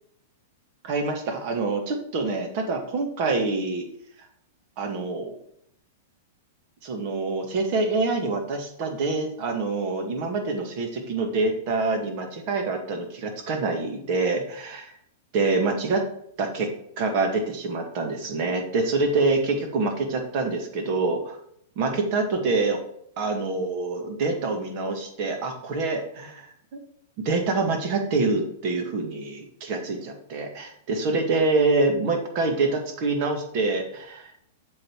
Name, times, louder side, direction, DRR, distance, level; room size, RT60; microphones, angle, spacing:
voice 1, 0.8-3.9 4.8-5.4 6.8-14.9 15.3-16.0 16.4-16.7 17.0-21.4 21.8-22.8 23.2-26.5 27.2-34.3, right 3 dB, 50° right, 3 dB, 2.1 m, -26 dB
7.6 x 4.0 x 6.5 m, 0.69 s
hypercardioid pair, 110°, 0 cm